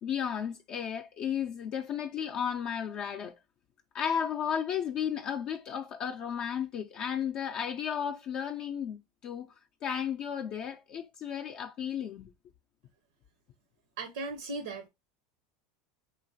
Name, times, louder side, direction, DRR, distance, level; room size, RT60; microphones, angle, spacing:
voice 1, 0.0-3.4 3.9-9.5 9.8-12.3, left 8 dB, 45° left, 0.4 m, -34 dB
voice 2, 14.0-14.9, right 3 dB, 80° right, 0.5 m, -37 dB
3.0 x 2.4 x 2.6 m
hypercardioid pair, 100°, 2 cm